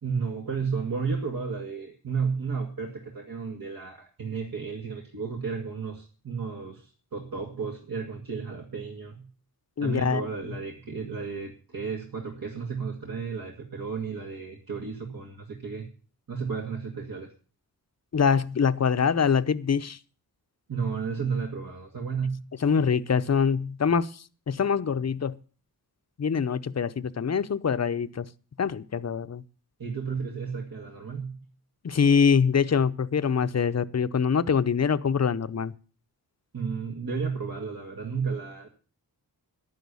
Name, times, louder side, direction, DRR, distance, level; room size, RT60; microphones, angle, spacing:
voice 1, 0.0-9.3 9.8-15.9 16.3-17.3 20.7-22.4 29.8-31.4 36.5-38.7, right 5 dB, 65° right, 2.1 m, -33 dB
voice 2, 9.8-10.6 18.1-20.0 22.6-25.3 26.2-28.3 28.6-29.4 31.8-35.7, left 6 dB, 45° left, 0.7 m, -24 dB
11.5 x 10.5 x 7.0 m
wide cardioid pair, 125°, 38 cm